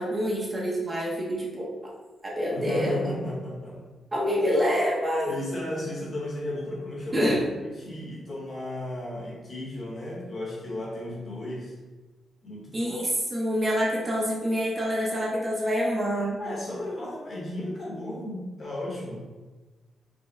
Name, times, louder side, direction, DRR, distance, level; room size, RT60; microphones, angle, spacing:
voice 1, 0.0-1.7 2.2-3.0 4.1-5.3 7.1-7.4 12.7-16.4, equal, 20° right, -4 dB, 0.6 m, -26 dB
voice 2, 2.5-3.8 5.3-7.3 7.6-11.7 12.4-13.0 16.4-19.3, left 1 dB, 35° left, -4 dB, 0.9 m, -34 dB
5.0 x 2.1 x 3.5 m, 1.2 s
wide cardioid pair, 170°, 0 cm